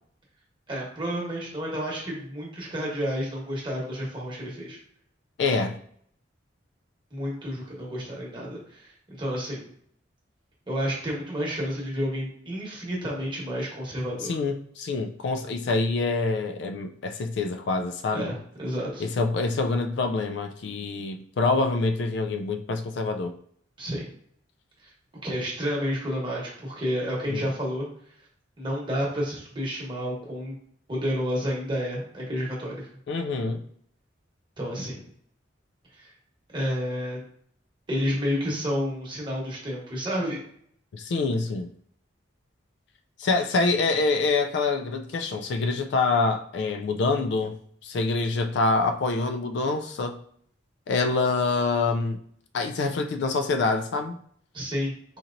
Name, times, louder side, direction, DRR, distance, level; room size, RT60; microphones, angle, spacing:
voice 1, 0.7-4.8 7.1-9.7 10.7-14.4 18.1-19.0 23.8-24.1 25.2-27.9 28.6-30.5 30.9-32.9 34.6-35.0 36.5-37.2 37.9-40.4 54.5-54.9, equal, 25° right, -3 dB, 1.1 m, -30 dB
voice 2, 5.4-5.8 14.3-18.3 19.0-23.3 27.3-27.5 33.1-33.6 40.9-41.7 43.2-47.6 47.8-50.2 50.9-52.2 52.5-54.2, left 3 dB, 60° left, 6 dB, 0.3 m, -26 dB
4.1 x 2.9 x 2.5 m, 0.63 s
head